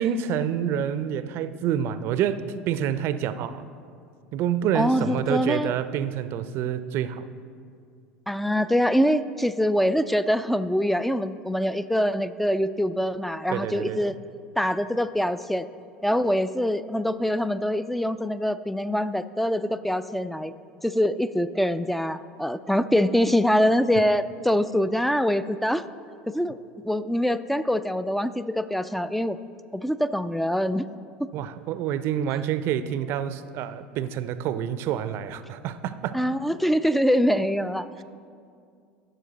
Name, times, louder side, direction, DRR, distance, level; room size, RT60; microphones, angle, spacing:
voice 1, 0.0-3.7 4.3-7.2 13.5-14.2 31.3-36.2, right 9 dB, 50° right, 13 dB, 0.5 m, -27 dB
voice 2, 4.7-5.7 8.3-14.1 14.6-15.7 16.0-20.5 20.8-25.9 26.3-26.6 26.8-29.4 29.7-30.9 36.1-37.9, equal, 5° left, 13 dB, 0.3 m, -24 dB
12.0 x 6.5 x 4.0 m, 2.3 s
hypercardioid pair, 80°, 5 cm